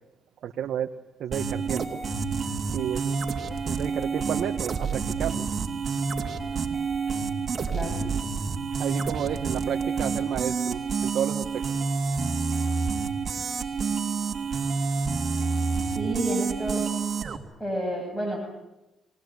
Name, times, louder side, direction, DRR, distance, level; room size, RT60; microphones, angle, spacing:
voice 1, 0.4-0.9 1.2-2.0 2.7-5.4 8.8-11.6, right 9 dB, 70° right, 3 dB, 1.4 m, -31 dB
sound 1, 1.3-17.4, right 5 dB, 45° right, 3.1 m, -28 dB
voice 2, 7.7-8.0 15.9-16.8 17.6-18.4, right 1 dB, 5° left, 0 dB, 7.8 m, -30 dB
24.5 x 19.0 x 9.7 m, 0.96 s
cardioid pair, 90°, 0 cm